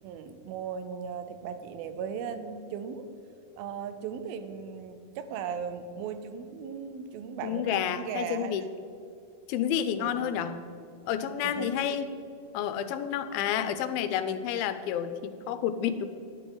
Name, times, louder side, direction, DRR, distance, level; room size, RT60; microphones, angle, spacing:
voice 1, 0.0-3.1 3.6-8.7 10.0-10.4 11.4-12.0, right 7 dB, 80° right, 9 dB, 2.5 m, -37 dB
voice 2, 7.4-8.6 9.5-10.6 11.1-12.1 12.5-16.1, left 9 dB, 85° left, 11 dB, 2.4 m, -30 dB
12.0 x 9.9 x 3.9 m, 2.5 s
omnidirectional pair, 4.3 m